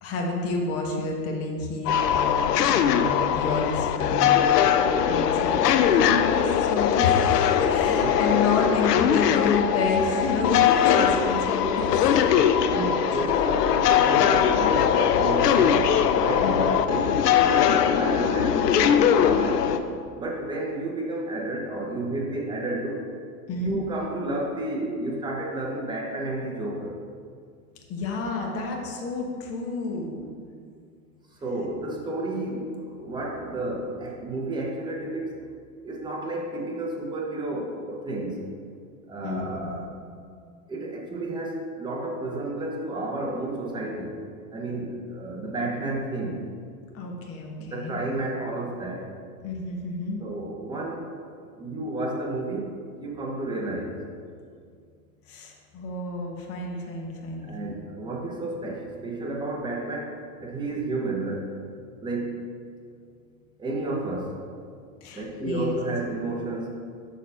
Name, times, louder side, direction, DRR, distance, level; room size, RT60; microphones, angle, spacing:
voice 1, 0.0-2.4 2.7-4.3 5.0-12.1 16.4-16.7 23.5-23.8 27.9-30.2 39.2-39.8 46.9-48.0 49.4-50.2 55.3-57.7 65.0-65.7, left 3 dB, 30° left, 0 dB, 1.2 m, -29 dB
sound 1, 1.9-19.8, left 9 dB, 85° left, 0.6 m, -21 dB
voice 2, 7.9-9.1 12.3-19.6 20.1-23.0 23.5-27.0 31.4-35.3 35.8-38.4 39.1-39.9 40.7-44.2 44.5-46.4 47.6-49.1 50.2-54.0 57.4-61.5 62.0-62.4 63.6-64.4 65.1-66.8, right 2 dB, 10° right, -1 dB, 0.9 m, -31 dB
6.6 x 4.1 x 5.5 m, 2.2 s
hypercardioid pair, 125°, 46 cm